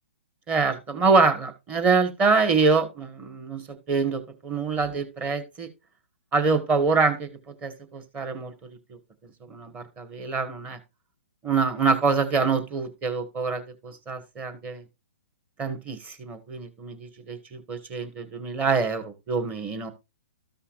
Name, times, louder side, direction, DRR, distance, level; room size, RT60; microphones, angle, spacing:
voice 1, 0.5-5.7 6.3-7.3 7.6-9.0 9.4-10.8 11.4-14.8 15.6-19.9, right 4 dB, 20° right, 7 dB, 1.7 m, -25 dB
14.0 x 5.6 x 2.6 m, 0.24 s
hypercardioid pair, 135°, 7 cm